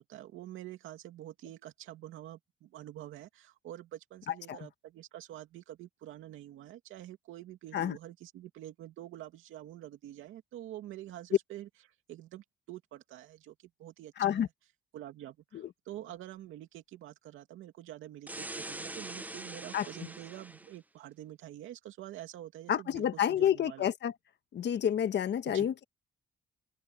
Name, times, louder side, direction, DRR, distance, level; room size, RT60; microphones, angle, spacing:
voice 1, 0.0-11.7 12.1-14.5 14.9-23.9 25.4-25.7, right 13 dB, 85° right, 2.5 m, -47 dB
voice 2, 14.2-14.5 15.5-15.7 19.7-19.9 22.7-24.1 24.5-25.8, left 9 dB, 60° left, 1.5 m, -29 dB
sound 1, 18.3-20.7, right 2 dB, 10° right, 0.7 m, -43 dB
open air
cardioid pair, 90°, 20 cm